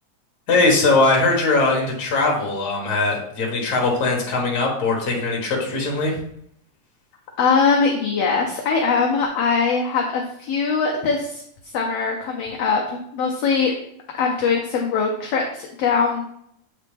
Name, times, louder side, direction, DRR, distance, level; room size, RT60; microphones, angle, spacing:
voice 1, 0.5-6.2, left 3 dB, 40° left, -1 dB, 1.6 m, -20 dB
voice 2, 7.4-11.4 11.7-13.7 14.2-16.3, left 5 dB, 70° left, 0 dB, 1.6 m, -21 dB
7.8 x 4.2 x 3.3 m, 0.71 s
omnidirectional pair, 3.4 m